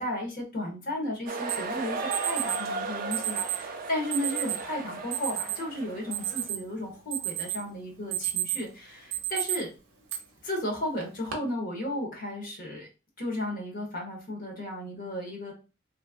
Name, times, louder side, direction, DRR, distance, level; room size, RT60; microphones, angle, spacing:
voice 1, 0.0-9.7 10.4-12.9 13.2-15.5, left 1 dB, 40° left, 0 dB, 1.0 m, -34 dB
sound 1, 1.3-6.5, right 3 dB, 40° right, 0.4 m, -36 dB
Alarm, 1.5-1.6 2.1-2.6 3.1-3.6 4.1-4.6 5.1-5.6 6.0-6.7 7.1-7.6 8.0-8.7 9.1-9.6 10.1-10.2 11.0-11.3, right 14 dB, 90° right, 0.8 m, -30 dB
3.1 x 2.4 x 2.4 m, 0.31 s
head